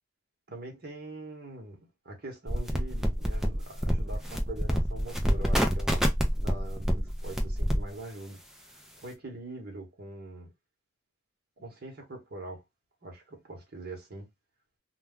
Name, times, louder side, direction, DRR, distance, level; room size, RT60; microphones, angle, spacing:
voice 1, 0.5-8.4 8.6-10.5 11.6-12.6 13.0-14.3, right 2 dB, 45° right, 1.0 m, -43 dB
sound 1, 2.5-7.8, equal, ahead, 0.4 m, -27 dB
2.3 x 2.2 x 3.4 m
head